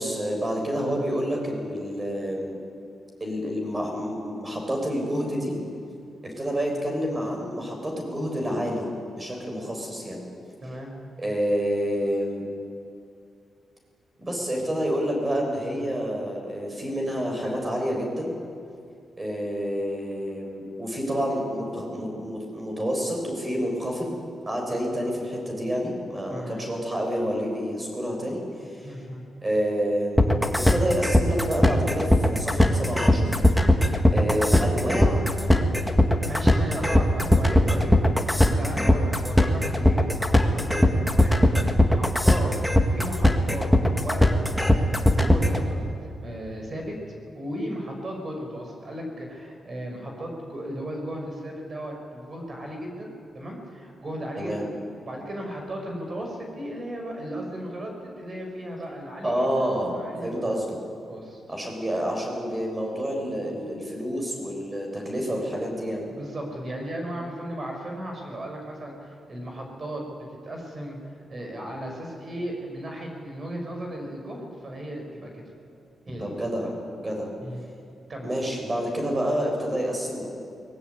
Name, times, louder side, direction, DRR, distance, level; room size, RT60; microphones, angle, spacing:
voice 1, 0.0-2.6 3.2-5.5 6.4-8.9 9.2-10.2 11.2-12.4 14.2-18.3 19.2-24.2 24.4-28.9 29.4-33.3 34.1-35.2 37.5-37.9 54.4-54.6 59.2-60.0 60.2-60.8 61.5-66.1 76.1-76.7 77.0-77.3 78.2-80.3, equal, 20° right, 1 dB, 6.9 m, -28 dB
voice 2, 26.3-26.6 28.8-29.2 34.3-34.4 36.1-42.5 42.8-43.7 43.9-46.9 47.3-54.7 55.0-60.6 61.1-61.4 66.1-71.0 71.3-75.4 76.1-76.3 77.4-77.6 78.1-78.3, equal, 40° right, 1 dB, 6.2 m, -36 dB
sound 1, 30.2-45.6, left 1 dB, ahead, 2.0 m, -19 dB
23.0 x 21.0 x 9.7 m, 2.4 s
cardioid pair, 110°, 0 cm